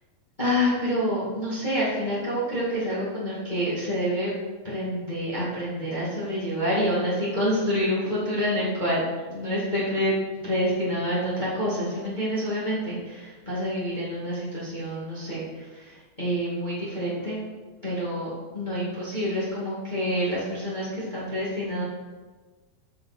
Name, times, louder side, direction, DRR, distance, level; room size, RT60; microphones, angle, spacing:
voice 1, 0.4-4.3 4.6-9.0 9.3-10.2 10.4-17.4 17.8-21.8, equal, 75° left, -8 dB, 0.4 m, -27 dB
12.5 x 5.1 x 4.3 m, 1.3 s
omnidirectional pair, 5.2 m